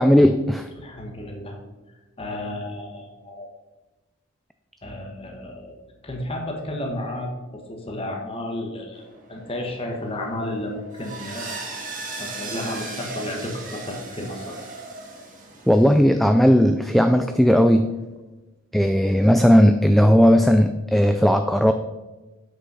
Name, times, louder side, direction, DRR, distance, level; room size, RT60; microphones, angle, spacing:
voice 1, 0.0-0.7 15.7-17.9 18.7-21.7, equal, ahead, 7 dB, 0.3 m, -16 dB
voice 2, 0.8-1.6 2.2-3.5 4.8-5.8 6.0-9.0 9.3-11.7 12.2-14.6, left 1 dB, 30° left, 1 dB, 1.3 m, -32 dB
sound 1, 8.9-16.1, right 3 dB, 40° right, 1.9 m, -37 dB
8.3 x 6.3 x 5.6 m, 1.1 s
head